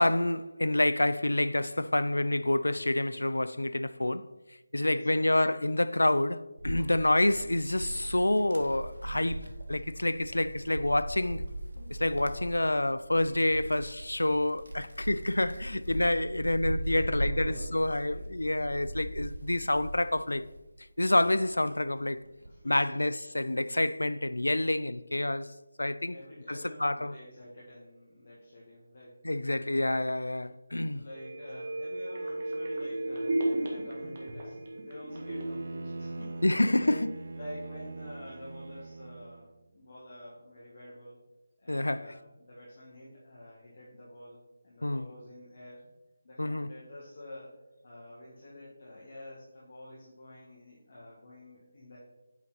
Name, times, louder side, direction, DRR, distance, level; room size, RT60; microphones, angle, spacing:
voice 1, 0.0-4.3 4.7-11.4 11.9-20.4 21.0-22.2 22.6-25.5 25.8-26.2 26.5-27.1 29.2-31.0 36.4-37.1 41.7-42.1 44.8-45.1 46.4-46.7, left 1 dB, 85° left, 0.3 m, -28 dB
voice 2, 4.7-5.3 15.9-16.1 16.8-18.2 22.4-23.0 26.1-29.2 30.9-37.0 37.3-41.2 41.6-45.8 46.2-47.6 47.8-52.0, left 1 dB, 55° left, 1.8 m, -48 dB
Wind, 6.6-20.7 21.1-22.6, right 1 dB, 90° right, 1.2 m, -39 dB
sound 1, 31.1-36.8 37.1-37.2, right 1 dB, 40° right, 1.6 m, -35 dB
Bowed string instrument, 35.1-39.5, right 2 dB, 60° right, 0.4 m, -42 dB
8.8 x 4.1 x 4.2 m
figure-of-eight pair, 160°, 0 cm